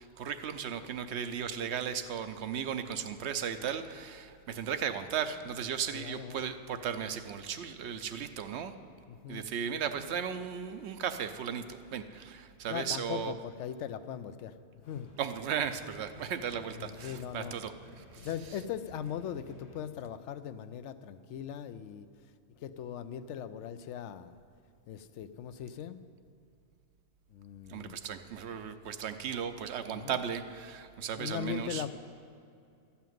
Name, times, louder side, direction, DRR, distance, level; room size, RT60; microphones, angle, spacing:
voice 1, 0.0-8.7 9.3-13.3 15.2-18.3 27.7-31.8, right 8 dB, 75° right, 10 dB, 0.9 m, -36 dB
voice 2, 5.9-6.4 9.1-9.5 12.7-15.1 16.8-17.5 18.2-22.1 22.6-24.4 24.9-26.0 27.3-28.0 29.9-30.2 31.1-31.9, left 9 dB, 85° left, 12 dB, 0.9 m, -40 dB
sound 1, 14.8-19.8, left 1 dB, 70° left, 1.7 m, -54 dB
13.0 x 5.8 x 9.2 m, 2.4 s
omnidirectional pair, 1.2 m